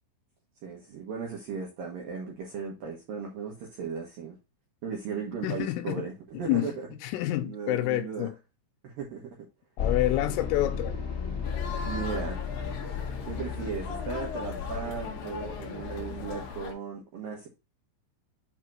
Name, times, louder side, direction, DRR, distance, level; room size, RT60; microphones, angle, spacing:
voice 1, 0.6-4.4 4.8-6.9 7.4-8.3 8.8-9.4 11.8-12.4 13.3-17.5, right 6 dB, 70° right, 2.2 m, -36 dB
voice 2, 5.4-6.1 6.3-8.3 9.8-11.0, left 15 dB, 90° left, 3.2 m, -28 dB
sound 1, 9.8-16.5, left 6 dB, 35° left, 1.6 m, -35 dB
sound 2, 11.4-16.7, left 6 dB, 65° left, 2.3 m, -39 dB
8.4 x 2.9 x 6.1 m
omnidirectional pair, 5.8 m